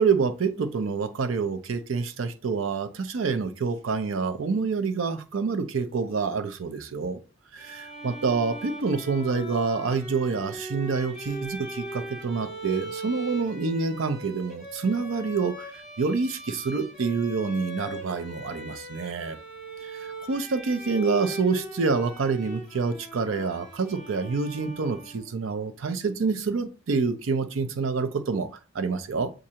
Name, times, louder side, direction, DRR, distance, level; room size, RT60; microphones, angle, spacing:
voice 1, 0.0-7.2 7.5-19.4 19.8-29.3, right 4 dB, 90° right, 0.5 m, -27 dB
Bowed string instrument, 7.6-25.4, right 1 dB, ahead, 2.5 m, -40 dB
7.3 x 2.5 x 2.8 m
head